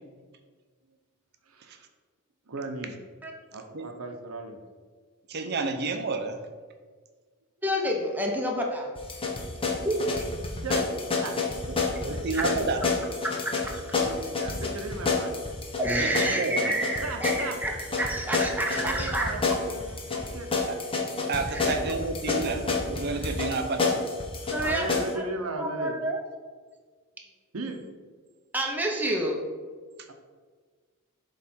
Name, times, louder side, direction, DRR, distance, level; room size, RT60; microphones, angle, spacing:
voice 1, 1.4-1.8 2.5-3.0 3.5-4.6 10.6-10.9 11.2-11.3 12.1-12.2 13.7-15.4 16.6-17.6 18.7-20.5 22.3-22.4 24.4-26.0 27.5-27.8 30.1-30.2, right 3 dB, 85° right, 4 dB, 0.8 m, -36 dB
voice 2, 5.3-6.4 12.0-12.9 15.9-16.7 20.7-20.8 21.3-24.1, right 3 dB, 50° right, 6 dB, 0.6 m, -30 dB
voice 3, 7.6-8.9 9.8-10.0 12.3-12.4 13.2-14.0 15.8-19.3 21.5-21.7 23.4-23.5 24.5-25.2 25.6-26.2 28.5-29.4, right 1 dB, 10° right, 0 dB, 0.7 m, -29 dB
sound 1, 9.0-25.1, left 4 dB, 25° left, 0.8 m, -29 dB
7.3 x 3.2 x 4.4 m, 1.5 s
head